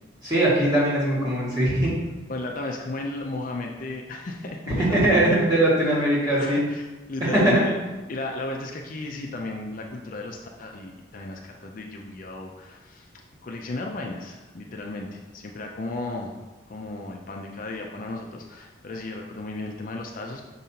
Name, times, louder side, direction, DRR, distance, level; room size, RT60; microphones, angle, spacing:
voice 1, 0.2-1.9 4.8-6.6 7.3-7.5, right 1 dB, 20° right, -8 dB, 1.8 m, -21 dB
voice 2, 2.3-5.4 6.4-7.7 8.1-13.1 13.4-16.3 16.7-20.4, left 2 dB, 45° left, 1 dB, 0.5 m, -34 dB
6.4 x 5.3 x 2.8 m, 1.2 s
head